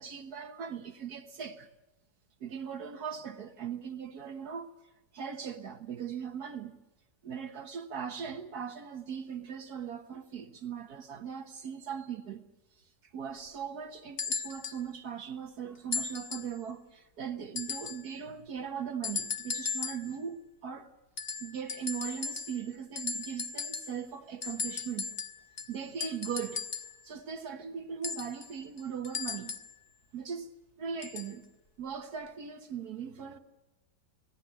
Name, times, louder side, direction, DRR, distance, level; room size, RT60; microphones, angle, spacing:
voice 1, 0.0-1.7 2.4-4.7 5.1-6.7 7.2-12.4 12.8-20.9 21.4-25.1 25.7-26.6 27.0-29.5 30.1-30.5 30.8-31.4 31.8-33.4, right 7 dB, 70° right, 1.7 m, -39 dB
sound 1, 14.2-14.8 15.9-16.6 17.6-18.1 19.0-20.1 21.2-22.7 23.0-24.0 24.4-27.0 28.0-29.8 31.0-31.4 32.3-32.4, left 5 dB, 45° left, 1.5 m, -37 dB
25.5 x 18.0 x 7.5 m
omnidirectional pair, 1.8 m